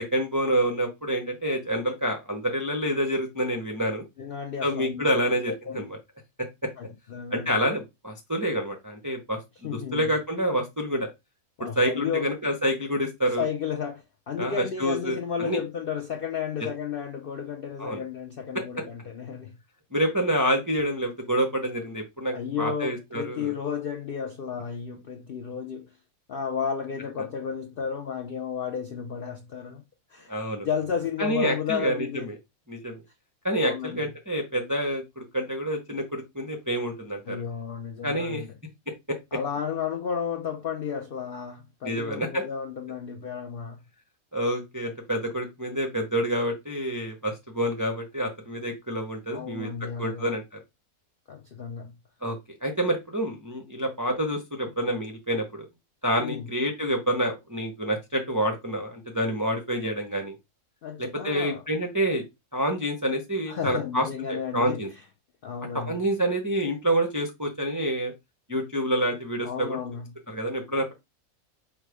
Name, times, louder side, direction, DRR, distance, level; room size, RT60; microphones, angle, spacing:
voice 1, 0.1-4.0 4.6-6.0 6.4-6.7 7.3-9.4 9.9-11.1 11.8-13.5 14.4-15.6 17.8-18.0 18.5-18.6 19.9-23.5 30.3-30.7 31.2-32.3 32.7-33.0 33.4-37.4 38.0-38.4 39.1-39.2 41.8-42.4 44.3-49.7 50.0-50.4 52.2-52.4 52.6-55.5 56.0-60.4 61.0-62.2 62.5-64.9 65.7-68.1 68.5-69.8 70.3-70.9, equal, 30° right, 0.3 m, -27 dB
voice 2, 4.2-5.1 5.5-5.8 6.8-7.5 9.6-10.1 11.6-12.3 13.4-19.6 22.3-25.9 26.3-29.8 30.1-30.3 30.6-32.3 33.6-34.1 37.3-38.5 39.3-43.8 49.3-50.3 51.3-51.9 56.2-56.5 60.8-61.6 63.5-64.8 65.4-66.0 69.4-70.2, left 7 dB, 85° left, 0.4 m, -33 dB
4.7 x 2.2 x 4.8 m
omnidirectional pair, 1.6 m